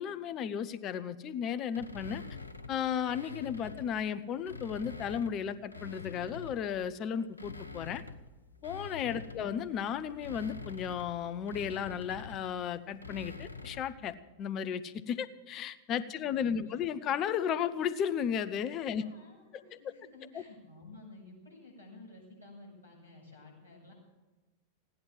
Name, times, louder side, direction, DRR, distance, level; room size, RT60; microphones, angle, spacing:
voice 1, 0.0-2.2 2.7-8.0 8.6-19.0 19.8-19.9 20.3-20.4, left 8 dB, 35° left, 14 dB, 0.8 m, -34 dB
sound 1, 1.7-3.9 4.3-6.8 7.2-14.0, left 4 dB, 80° left, 1.0 m, -46 dB
voice 2, 16.2-16.9 19.0-23.9, left 2 dB, 85° right, -1 dB, 7.5 m, -53 dB
17.0 x 10.5 x 7.5 m, 1.2 s
figure-of-eight pair, 90°, 0 cm